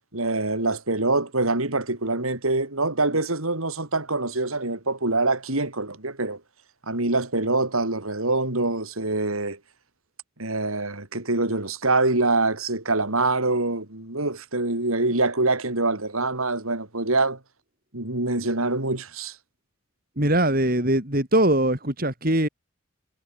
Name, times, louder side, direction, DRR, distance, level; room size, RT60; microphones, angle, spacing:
voice 1, 0.1-6.4 6.9-9.6 10.4-17.4 17.9-19.4, right 2 dB, 80° right, 4.3 m, -25 dB
voice 2, 20.2-22.5, right 1 dB, 45° right, 5.0 m, -21 dB
head